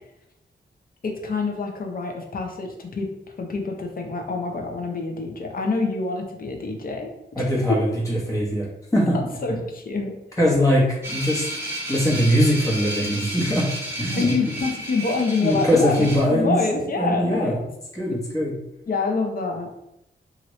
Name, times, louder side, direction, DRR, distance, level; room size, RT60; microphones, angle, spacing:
voice 1, 1.0-3.1 3.4-7.8 9.1-10.1 14.2-17.5 18.1-18.2 18.9-19.7, left 3 dB, 50° left, 3 dB, 0.6 m, -26 dB
voice 2, 7.3-8.7 8.9-9.2 10.4-11.5 11.9-13.7 14.0-14.5 15.4-17.6 17.9-18.5, equal, 15° left, -4 dB, 1.1 m, -21 dB
sound 1, 11.0-16.2, right 1 dB, 15° right, 1.0 m, -32 dB
2.9 x 2.5 x 3.1 m, 0.87 s
wide cardioid pair, 90°, 19 cm